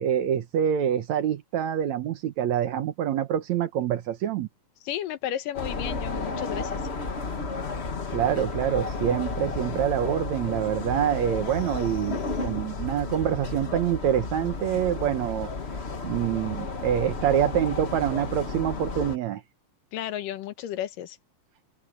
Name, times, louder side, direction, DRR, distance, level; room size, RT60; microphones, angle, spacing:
voice 1, 0.0-4.5 8.1-12.2 12.4-15.5 16.0-19.4, right 10 dB, 65° right, 2.1 m, -26 dB
voice 2, 4.9-6.8 19.9-21.2, left 11 dB, 80° left, 2.7 m, -33 dB
sound 1, 5.5-19.2, left 3 dB, 65° left, 0.6 m, -33 dB
open air
omnidirectional pair, 3.9 m